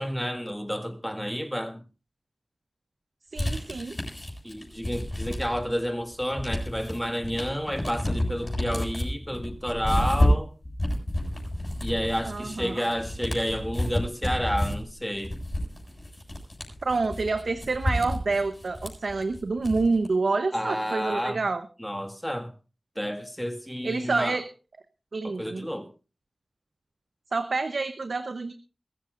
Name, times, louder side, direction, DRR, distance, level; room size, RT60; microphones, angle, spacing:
voice 1, 0.0-1.8 4.4-10.5 11.8-15.4 20.5-21.4 21.8-22.5 23.0-24.4 25.2-25.9, equal, 5° left, 1.9 m, -30 dB
voice 2, 3.3-3.9 12.3-12.8 16.8-21.7 23.8-24.5 25.1-25.7 27.3-28.5, right 3 dB, 90° right, 0.9 m, -28 dB
sound 1, 3.4-5.8 6.1-20.1, left 1 dB, 35° left, 7.4 m, -30 dB
22.0 x 14.5 x 2.6 m
wide cardioid pair, 70°, 0 cm